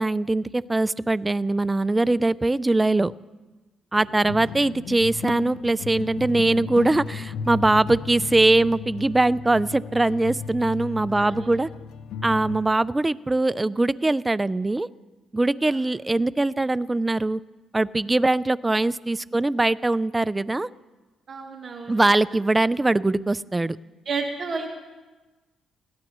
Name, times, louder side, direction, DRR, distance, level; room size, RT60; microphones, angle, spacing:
voice 1, 0.0-3.1 3.9-11.7 12.2-14.9 15.3-17.4 17.7-20.7 21.9-23.8, right 2 dB, 15° right, 18 dB, 0.4 m, -22 dB
sound 1, 3.9-12.6, left 6 dB, 80° left, 0.7 m, -35 dB
voice 2, 11.1-11.6 15.6-15.8 21.3-22.0 24.0-24.7, right 4 dB, 45° right, 2 dB, 1.6 m, -32 dB
21.5 x 17.0 x 3.1 m, 1.2 s
cardioid pair, 90°, 0 cm